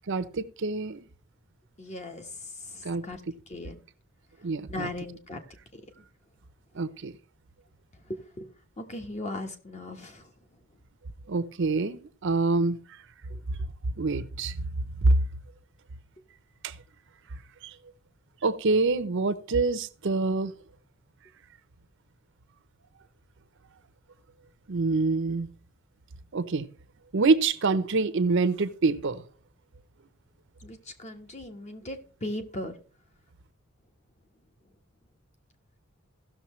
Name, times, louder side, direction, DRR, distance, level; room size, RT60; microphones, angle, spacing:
voice 1, 0.1-1.0 2.8-3.0 4.4-4.9 6.7-7.1 11.3-12.8 14.0-14.6 15.0-15.2 16.6-16.8 17.6-17.7 18.4-20.5 24.7-25.5 26.3-26.7 27.1-29.2, right 3 dB, 65° right, 0.7 m, -26 dB
voice 2, 1.8-2.3 3.0-3.2 3.5-3.8 4.7-5.4 8.1-8.5 8.8-10.2 30.6-32.7, left 1 dB, 35° left, 1.2 m, -37 dB
16.5 x 6.4 x 3.1 m
head